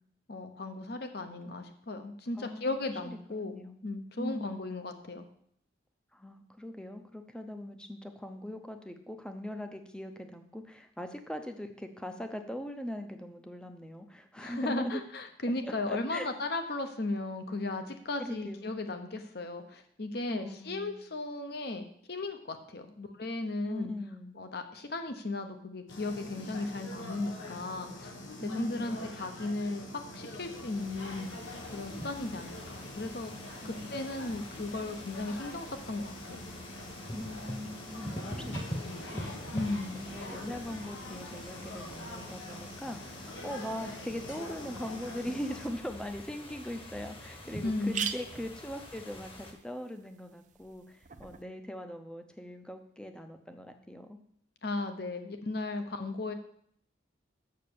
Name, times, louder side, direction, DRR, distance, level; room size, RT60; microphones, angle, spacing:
voice 1, 0.3-5.2 14.4-23.9 24.4-28.1 28.4-31.3 31.7-33.3 33.6-36.4 39.5-40.0 47.6-48.1 54.6-56.3, left 2 dB, 55° left, 7 dB, 0.9 m, -36 dB
voice 2, 2.4-2.7 3.0-3.8 4.2-4.8 6.1-15.0 15.6-16.3 18.2-18.7 20.3-21.0 23.6-24.3 28.4-29.1 33.6-34.0 37.1-39.4 39.9-54.2, left 1 dB, 5° left, 7 dB, 0.6 m, -41 dB
sound 1, 25.9-45.7, left 1 dB, 85° left, 1.5 m, -45 dB
sound 2, 30.0-49.5, equal, 30° left, 1.2 m, -45 dB
sound 3, 46.3-46.4 46.9-47.0 47.2-47.3 47.6-51.4, right 7 dB, 40° right, 0.6 m, -42 dB
6.7 x 6.5 x 6.9 m, 0.68 s
head